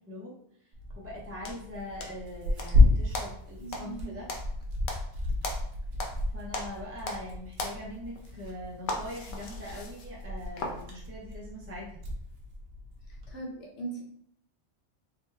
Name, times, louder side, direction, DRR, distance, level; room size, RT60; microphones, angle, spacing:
Tearing, 0.7-13.3, left 2 dB, 65° right, 0.9 m, -31 dB
voice 1, 1.0-4.3 6.3-12.0, left 1 dB, 20° right, -4 dB, 0.3 m, -42 dB
sound 1, 1.5-2.8 3.1-6.2 6.5-7.3 7.6-10.8, left 2 dB, 55° left, 0.6 m, -38 dB
voice 2, 3.6-4.2 13.3-14.0, right 3 dB, 85° left, -1 dB, 1.2 m, -39 dB
3.6 x 2.1 x 3.2 m, 0.69 s
omnidirectional pair, 1.2 m